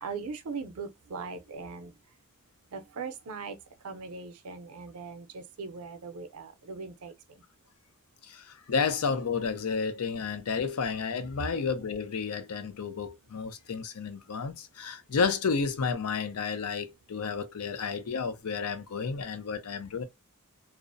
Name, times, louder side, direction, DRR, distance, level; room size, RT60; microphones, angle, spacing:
voice 1, 0.0-1.9 2.7-3.6 3.8-7.1, right 4 dB, 80° right, 0.5 m, -39 dB
voice 2, 8.2-20.0, left 5 dB, 85° left, 0.5 m, -31 dB
2.4 x 2.0 x 2.5 m
head